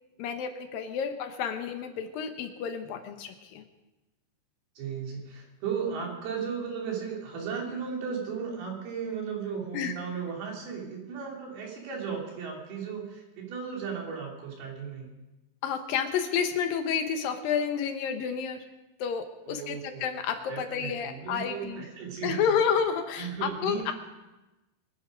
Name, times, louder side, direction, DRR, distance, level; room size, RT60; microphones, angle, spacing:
voice 1, 0.2-3.6 9.7-9.9 15.6-18.6 19.0-21.8 22.2-23.9, left 7 dB, 70° left, 7 dB, 2.6 m, -30 dB
voice 2, 4.8-15.1 19.5-20.0 20.5-22.6 23.2-23.9, right 6 dB, 80° right, -1 dB, 4.8 m, -35 dB
23.5 x 10.0 x 5.1 m, 1.0 s
omnidirectional pair, 4.4 m